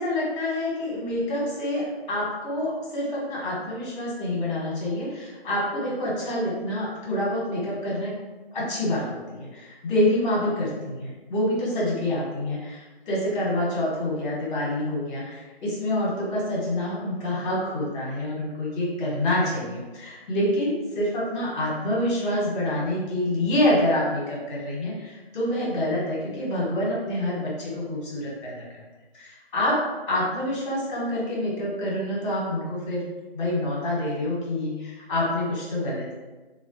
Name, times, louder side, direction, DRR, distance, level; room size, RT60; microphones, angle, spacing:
voice 1, 0.0-8.2 8.5-28.8 29.1-29.8 30.1-33.1 33.3-36.1, left 1 dB, 30° left, -5 dB, 1.2 m, -27 dB
3.3 x 2.2 x 2.7 m, 1.2 s
figure-of-eight pair, 145°, 31 cm